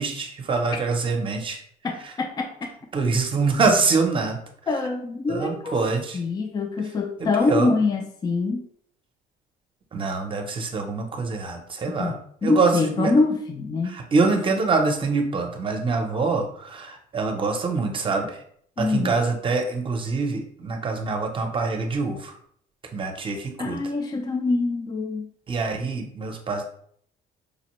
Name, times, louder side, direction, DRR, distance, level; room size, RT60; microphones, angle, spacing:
voice 1, 0.0-1.6 2.9-4.4 5.3-6.2 7.2-7.7 9.9-12.1 12.4-13.1 13.8-18.4 18.8-22.3 22.9-23.8 25.5-26.6, right 4 dB, 30° right, 3 dB, 0.7 m, -25 dB
voice 2, 1.8-2.7 4.7-5.8 6.1-8.7 12.0-14.0 18.8-19.1 23.6-25.3, left 3 dB, 25° left, 4 dB, 0.4 m, -25 dB
4.9 x 2.1 x 3.0 m, 0.63 s
cardioid pair, 110°, 17 cm